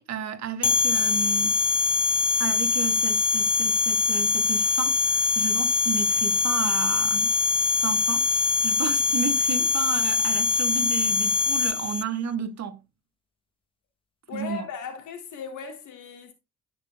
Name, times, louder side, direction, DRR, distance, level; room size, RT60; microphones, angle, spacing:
voice 1, 0.0-1.6 2.4-7.3 7.8-12.8 14.3-14.7, right 7 dB, 60° right, 1.6 m, -33 dB
sound 1, 0.6-12.0, left 4 dB, 20° left, 0.4 m, -23 dB
voice 2, 14.3-16.3, left 6 dB, 75° left, 2.9 m, -37 dB
15.0 x 6.1 x 2.2 m
cardioid pair, 90°, 30 cm